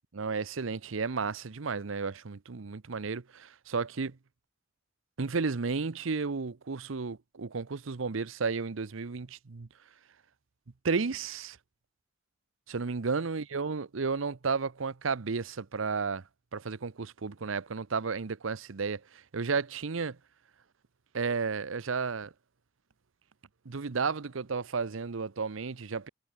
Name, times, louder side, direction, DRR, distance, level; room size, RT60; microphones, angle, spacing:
voice 1, 0.1-4.2 5.2-9.7 10.8-11.6 12.7-16.2 16.5-19.0 19.3-20.2 21.1-22.3 23.7-26.1, right 4 dB, 75° right, 0.7 m, -33 dB
head